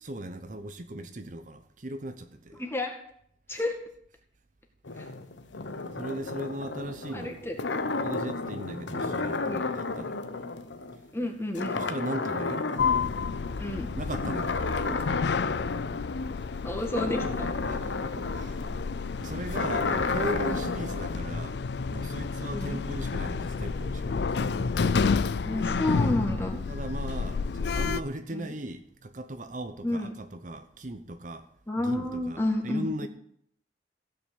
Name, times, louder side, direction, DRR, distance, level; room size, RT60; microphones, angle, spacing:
voice 1, 0.0-2.6 3.5-3.6 4.9-5.1 5.9-7.4 8.0-10.2 11.7-12.6 13.9-14.6 16.4-16.5 17.7-18.7 19.2-21.6 21.9-25.1 26.7-31.5 31.8-33.1, right 1 dB, 45° right, 0.9 m, -38 dB
voice 2, 2.6-3.0 3.5-3.8 7.1-7.9 9.4-9.6 11.1-11.8 13.6-13.9 14.9-15.0 16.6-17.5 22.5-22.8 25.4-26.6 28.3-28.5 29.8-30.1 31.7-33.1, left 1 dB, 15° left, 2.0 m, -31 dB
sound 1, 4.8-11.3 11.6-13.6 14.0-21.2, left 3 dB, 85° left, 1.0 m, -32 dB
Sliding door, 12.8-28.0, left 5 dB, 65° left, 0.5 m, -30 dB
16.0 x 5.9 x 8.5 m
head